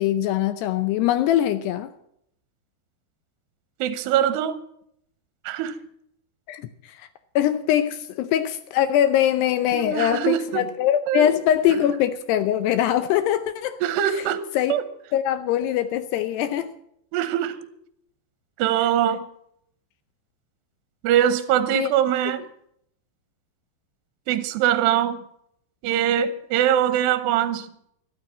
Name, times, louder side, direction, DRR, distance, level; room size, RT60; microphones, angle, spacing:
voice 1, 0.0-1.9 6.5-7.1 7.4-13.8 14.6-14.7 15.1-16.7 21.7-21.9, left 11 dB, 80° left, 2.5 m, -22 dB
voice 2, 3.8-4.6 5.4-5.8 9.7-10.7 11.1-11.3 13.8-14.8 17.1-17.7 18.6-19.3 21.0-22.4 24.3-25.2 25.8-27.7, right 10 dB, 75° right, 2.8 m, -22 dB
12.5 x 12.5 x 7.3 m
omnidirectional pair, 5.3 m